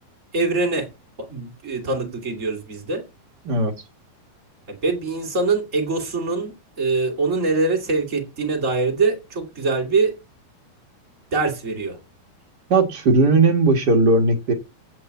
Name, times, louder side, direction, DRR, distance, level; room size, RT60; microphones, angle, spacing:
voice 1, 0.3-0.9 1.2-3.0 4.7-10.2 11.3-12.0, right 3 dB, 25° right, 2.2 m, -23 dB
voice 2, 12.7-14.5, right 3 dB, 70° right, 0.9 m, -17 dB
8.2 x 7.5 x 8.2 m
omnidirectional pair, 4.5 m